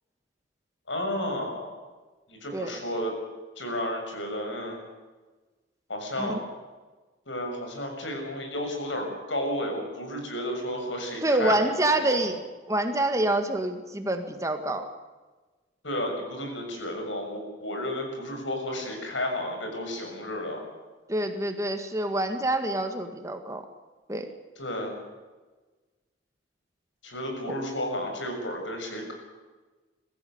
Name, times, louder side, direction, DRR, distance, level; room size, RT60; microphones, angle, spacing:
voice 1, 0.9-1.8 2.3-3.1 3.6-4.8 5.9-6.4 7.3-12.3 15.8-20.6 24.6-25.0 27.0-29.1, left 1 dB, 90° left, 2 dB, 6.9 m, -32 dB
voice 2, 11.2-14.9 21.1-23.7 24.1-24.3 27.5-27.6, right 1 dB, 15° right, 7 dB, 1.8 m, -27 dB
22.5 x 15.0 x 9.5 m, 1.3 s
head